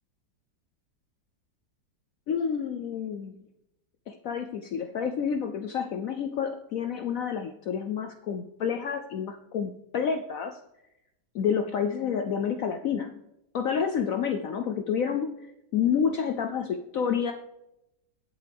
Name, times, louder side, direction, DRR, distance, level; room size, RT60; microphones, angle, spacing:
voice 1, 2.3-3.3 4.1-10.6 11.3-13.3 13.5-15.5 15.7-17.3, left 7 dB, 70° left, 7 dB, 0.8 m, -29 dB
20.5 x 7.5 x 3.4 m, 0.89 s
omnidirectional pair, 2.0 m